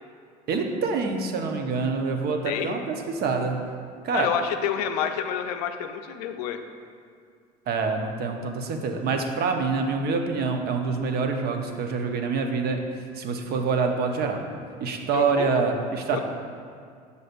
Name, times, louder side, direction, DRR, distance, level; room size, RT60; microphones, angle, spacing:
voice 1, 0.5-3.6 4.0-4.3 7.7-12.8 13.2-14.4 14.8-16.2, right 4 dB, 50° right, 4 dB, 0.7 m, -26 dB
voice 2, 4.1-6.6 15.1-15.6 16.1-16.2, left 9 dB, 75° left, 7 dB, 0.5 m, -28 dB
6.7 x 6.4 x 2.5 m, 2.1 s
hypercardioid pair, 65°, 20 cm